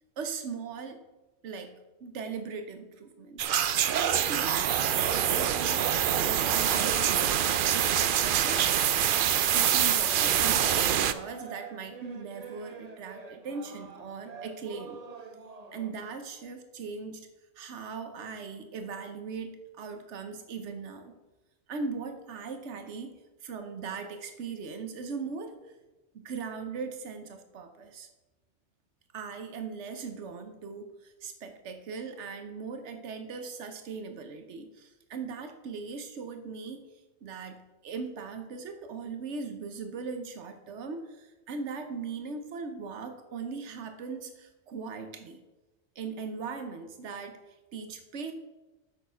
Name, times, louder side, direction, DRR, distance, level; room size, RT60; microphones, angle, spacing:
voice 1, 0.2-1.1 1.4-1.7 2.0-3.5 3.9-9.0 9.5-15.0 15.7-17.3 17.6-21.1 21.7-23.1 23.4-25.6 26.1-28.1 29.1-36.9 37.2-45.4 46.0-47.4 47.7-48.3, right 5 dB, 85° right, 7 dB, 1.2 m, -39 dB
sound 1, 3.4-11.1, right 9 dB, 60° right, 0.6 m, -25 dB
sound 2, 8.3-15.9, right 3 dB, 35° right, 1.0 m, -46 dB
8.5 x 7.2 x 5.6 m, 1.1 s
omnidirectional pair, 1.2 m